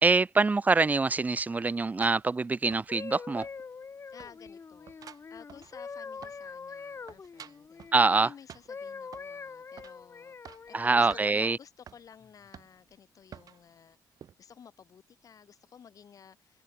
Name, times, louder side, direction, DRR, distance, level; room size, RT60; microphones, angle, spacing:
voice 1, 0.0-3.5 7.9-8.3 10.7-11.6, right 3 dB, 25° right, 0.5 m, -24 dB
sound 1, 1.4-3.2 3.4-3.9 4.2-6.6 6.9-8.0 8.5-9.4 9.8-10.0 10.3-10.7 11.1-11.3 11.9-12.0 12.5-12.9 13.3-13.6 14.2-14.3, right 8 dB, 60° right, 3.2 m, -51 dB
sound 2, 2.9-8.3 8.7-11.6 12.2-12.5, left 5 dB, 35° left, 1.0 m, -44 dB
voice 2, 4.1-7.8 8.2-14.0 14.4-16.6, left 7 dB, 55° left, 3.0 m, -54 dB
open air
supercardioid pair, 65°, 7 cm